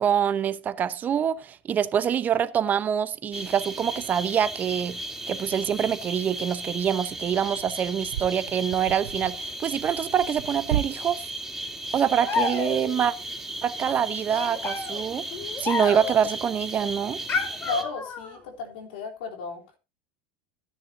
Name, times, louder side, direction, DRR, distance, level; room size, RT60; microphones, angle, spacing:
voice 1, 0.0-11.3 11.9-13.1 13.6-15.3 15.6-17.2, right 8 dB, 35° right, 0.8 m, -25 dB
sound 1, 3.3-17.8, right 1 dB, 5° right, 4.2 m, -36 dB
sound 2, 5.8-6.0 6.7-10.9, right 12 dB, 85° right, 0.5 m, -35 dB
sound 3, 12.2-13.1 14.3-16.3 17.3-18.4, left 4 dB, 40° left, 2.6 m, -30 dB
voice 2, 17.7-19.6, left 4 dB, 80° left, 3.6 m, -33 dB
15.5 x 10.0 x 2.7 m
hypercardioid pair, 95°, 5 cm